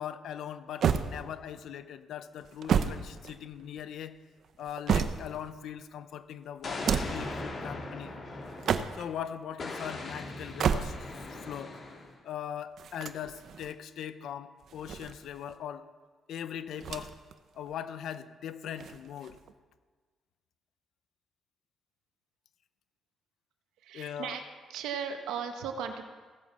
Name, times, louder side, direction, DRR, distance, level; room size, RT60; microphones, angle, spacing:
voice 1, 0.0-4.2 4.6-8.1 8.9-11.0 11.4-11.8 12.2-15.9 16.3-17.1 17.5-19.4 23.9-24.3, left 9 dB, 75° left, 11 dB, 1.0 m, -40 dB
sound 1, 0.8-1.6 2.4-3.8 4.4-5.5 6.6-7.3 8.4-9.2 10.4-11.3 12.8-13.7 14.6-15.6 16.8-17.3 17.7-17.8 18.7-19.5, right 7 dB, 65° right, 0.9 m, -31 dB
Explosion, 6.6-9.1 9.6-12.1, left 2 dB, 45° left, 3.9 m, -39 dB
voice 2, 23.8-24.4 24.7-26.0, right 7 dB, 90° right, 5 dB, 1.5 m, -36 dB
16.5 x 9.0 x 6.9 m, 1.4 s
cardioid pair, 90°, 0 cm